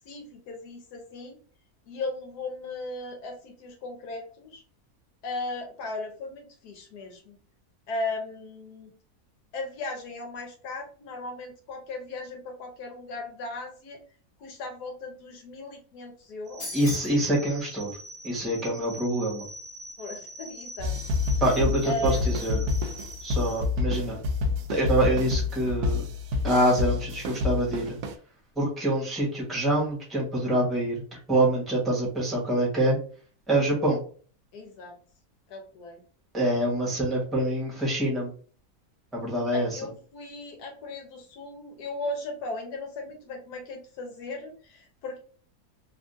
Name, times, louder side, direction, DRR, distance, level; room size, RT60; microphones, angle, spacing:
voice 1, 0.1-1.4 1.9-4.6 5.2-7.3 7.9-8.9 9.5-14.0 14.4-16.6 20.0-20.9 21.8-22.2 34.5-34.9 35.5-36.0 39.5-45.2, left 2 dB, 85° left, 3 dB, 1.3 m, -37 dB
sound 1, 16.5-23.6, right 1 dB, 50° right, 0.6 m, -43 dB
sound 2, 16.6-17.2, left 3 dB, 60° left, 1.3 m, -38 dB
voice 2, 16.7-17.9 18.2-19.5 21.4-22.7 23.2-24.2 24.7-26.0 26.4-28.0 28.6-33.0 33.5-34.0 36.3-38.3 39.1-39.8, right 1 dB, ahead, -5 dB, 1.0 m, -25 dB
sound 3, 20.8-28.1, left 4 dB, 80° right, 1.1 m, -28 dB
3.4 x 2.4 x 2.6 m, 0.42 s
omnidirectional pair, 1.6 m